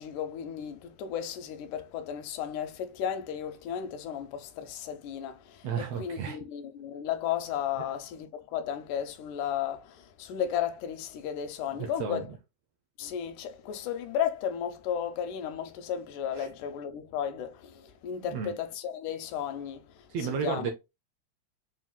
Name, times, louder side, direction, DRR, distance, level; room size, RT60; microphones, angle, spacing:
voice 1, 0.0-12.3 13.0-19.8 20.4-20.7, left 9 dB, 85° left, 2.0 m, -34 dB
voice 2, 5.6-6.4 7.7-7.8 11.7-12.4 16.3-16.5 18.2-18.5 20.1-20.7, right 6 dB, 85° right, 1.4 m, -33 dB
5.6 x 2.5 x 2.2 m
omnidirectional pair, 3.5 m